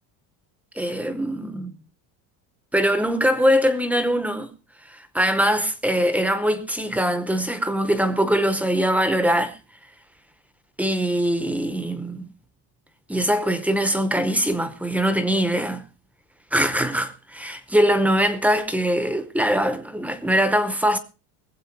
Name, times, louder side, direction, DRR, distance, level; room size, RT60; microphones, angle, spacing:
voice 1, 0.8-1.7 2.7-4.5 4.9-9.6 10.8-12.3 13.1-15.8 16.5-21.0, equal, 5° right, 0.7 m, -22 dB
21.0 x 7.9 x 4.5 m
cardioid pair, 180°, 49 cm